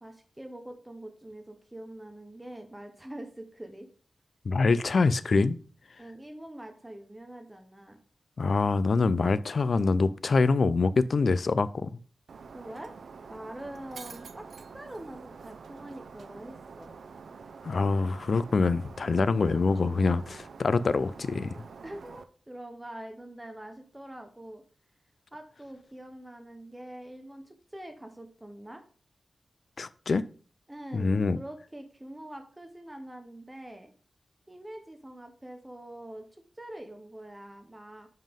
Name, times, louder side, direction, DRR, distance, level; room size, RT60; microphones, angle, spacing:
voice 1, 0.0-3.9 6.0-8.0 12.5-12.9 13.3-14.5 14.7-16.9 21.8-24.6 25.3-28.8 30.7-33.9 34.5-38.1, right 1 dB, 15° right, 0.9 m, -44 dB
voice 2, 4.5-5.6 8.4-12.0 17.6-21.6 29.8-30.2 30.9-31.4, left 4 dB, 60° left, 0.4 m, -25 dB
Shatter, 12.3-22.2, right 5 dB, 85° right, 0.5 m, -47 dB
7.4 x 5.4 x 3.6 m
wide cardioid pair, 115°, 0 cm